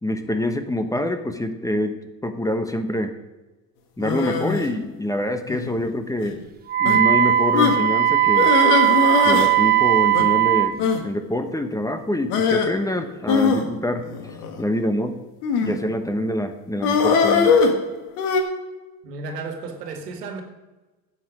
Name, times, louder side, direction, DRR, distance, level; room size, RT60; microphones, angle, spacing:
voice 1, 0.0-3.1 4.0-6.4 6.8-8.5 9.2-14.0 14.6-15.2 15.6-17.5, left 1 dB, 5° left, 1.1 m, -26 dB
sound 1, 4.0-4.7 5.5-5.8 6.2-6.3 6.9-7.0 7.5-7.8 8.3-9.5 9.8-9.9 10.1-10.3 10.8-11.0 12.3-12.7 13.3-14.6 15.4-15.9 16.8-18.4, left 5 dB, 75° left, 1.8 m, -21 dB
Wind instrument woodwind instrument, 6.7-10.7, right 12 dB, 20° right, 0.4 m, -18 dB
voice 2, 19.0-20.4, right 3 dB, 90° right, 1.8 m, -33 dB
11.5 x 8.5 x 5.0 m
hypercardioid pair, 80°, 46 cm